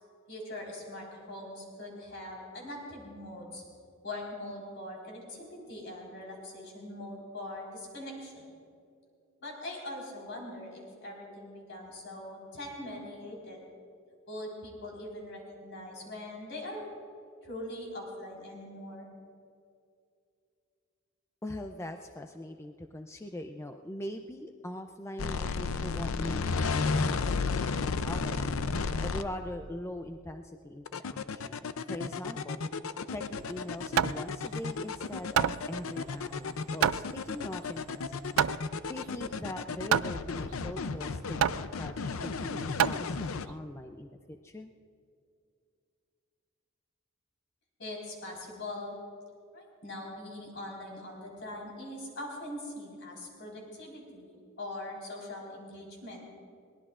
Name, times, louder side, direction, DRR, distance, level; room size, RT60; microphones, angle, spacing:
voice 1, 0.3-3.6 4.0-8.5 9.4-13.6 14.3-16.8 17.4-19.1 47.8-49.0 49.5-54.3 54.6-56.2, left 1 dB, 60° left, -2 dB, 4.4 m, -42 dB
voice 2, 21.4-28.6 29.0-32.6 33.1-38.4 38.9-44.7, left 1 dB, 15° left, 5 dB, 0.4 m, -42 dB
sound 1, 25.2-29.2 30.9-43.5, left 4 dB, 85° left, 0.6 m, -33 dB
Hammer, 33.4-43.6, right 9 dB, 90° right, 0.4 m, -31 dB
22.5 x 19.0 x 2.5 m, 2.4 s
head